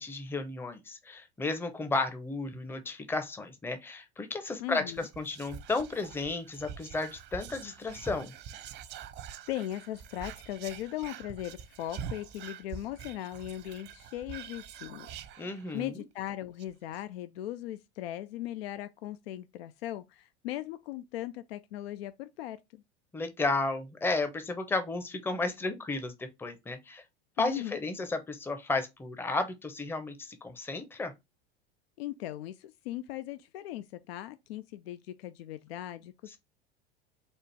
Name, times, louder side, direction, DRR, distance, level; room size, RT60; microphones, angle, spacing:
voice 1, 0.0-8.3 15.4-15.9 23.1-27.0 27.4-31.1, left 3 dB, 5° left, 0.6 m, -33 dB
voice 2, 4.6-5.1 9.5-22.8 27.4-27.8 32.0-36.4, left 13 dB, 70° left, 0.5 m, -39 dB
Whispering, 4.9-16.0 16.3-16.4 16.6-17.0, right 8 dB, 35° right, 0.5 m, -45 dB
4.3 x 2.4 x 4.5 m
hypercardioid pair, 85°, 32 cm